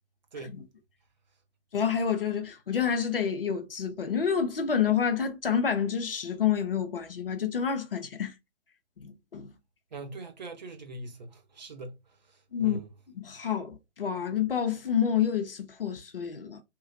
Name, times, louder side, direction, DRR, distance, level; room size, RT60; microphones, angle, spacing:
voice 1, 0.3-0.6 9.9-12.0 12.3-12.9, right 2 dB, 40° right, 0.7 m, -42 dB
voice 2, 1.7-8.3 9.0-9.5 12.5-12.8 13.2-16.6, left 7 dB, 50° left, 0.6 m, -28 dB
2.8 x 2.4 x 2.5 m
figure-of-eight pair, 135°, 35 cm